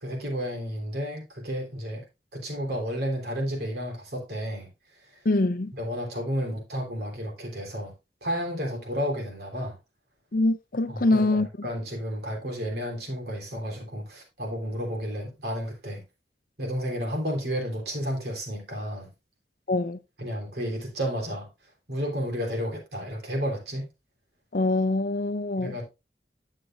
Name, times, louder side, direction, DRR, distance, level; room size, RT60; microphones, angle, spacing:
voice 1, 0.0-2.0 2.3-4.7 5.0-5.2 5.7-7.9 8.2-9.8 10.9-16.0 16.6-19.1 20.2-21.5 21.9-23.9 25.6-25.9, equal, 60° right, 3.4 m, -32 dB
voice 2, 5.2-5.7 10.3-11.5 19.7-20.0 24.5-25.8, left 2 dB, 55° left, 0.6 m, -24 dB
10.0 x 7.7 x 2.4 m
head